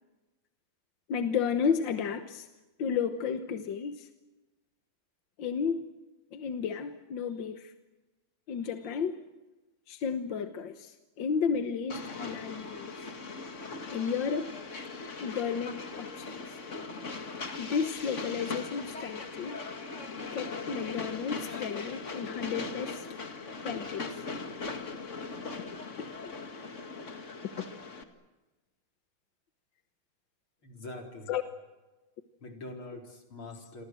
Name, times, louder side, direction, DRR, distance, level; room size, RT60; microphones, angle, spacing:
voice 1, 1.1-2.5 2.8-4.1 5.4-5.9 6.3-7.7 8.5-9.2 9.9-12.9 13.9-14.5 15.2-16.4 17.6-19.6 20.3-23.1 23.6-24.2 31.3-31.4, left 6 dB, 65° left, 8 dB, 1.8 m, -32 dB
Train, 11.9-28.0, left 4 dB, 35° left, 2.2 m, -39 dB
voice 2, 30.6-31.3 32.4-33.9, left 2 dB, 85° left, 3 dB, 5.0 m, -44 dB
29.5 x 23.5 x 7.7 m, 1.2 s
omnidirectional pair, 2.2 m